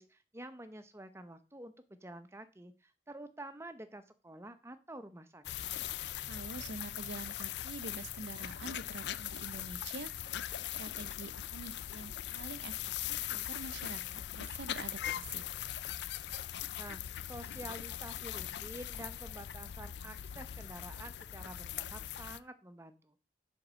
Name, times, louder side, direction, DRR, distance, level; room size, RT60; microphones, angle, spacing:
voice 1, 0.0-1.7 2.0-5.7 16.7-23.2, right 1 dB, 15° right, 9 dB, 0.8 m, -49 dB
sound 1, 5.4-22.4, left 11 dB, 70° left, 0.4 m, -40 dB
voice 2, 6.3-10.1 10.7-12.8 13.1-15.4, right 3 dB, 75° right, 12 dB, 0.8 m, -46 dB
7.8 x 5.3 x 6.2 m, 0.32 s
head